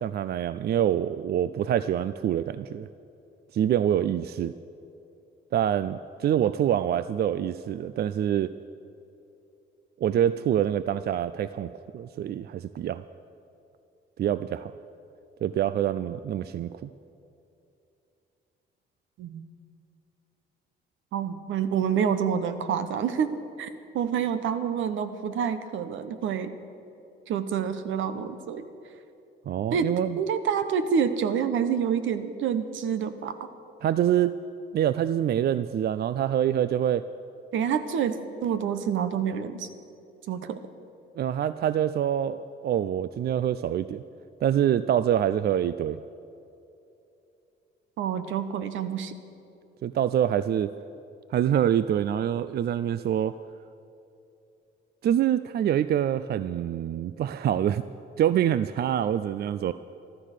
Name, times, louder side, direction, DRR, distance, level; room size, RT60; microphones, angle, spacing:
voice 1, 0.0-2.9 3.5-4.5 5.5-8.5 10.0-13.0 14.2-14.7 15.4-16.9 29.5-30.2 33.8-34.3 34.7-37.0 41.2-44.0 44.4-46.0 49.8-50.7 51.3-53.3 55.0-57.8 58.2-59.7, right 10 dB, 55° right, 14 dB, 0.4 m, -25 dB
voice 2, 21.1-23.7 23.9-26.5 27.3-28.7 29.7-29.9 30.2-33.5 37.5-39.7 40.3-40.6 48.0-49.1, right 7 dB, 80° right, 11 dB, 1.0 m, -27 dB
13.5 x 13.5 x 6.6 m, 2.7 s
cardioid pair, 90°, 20 cm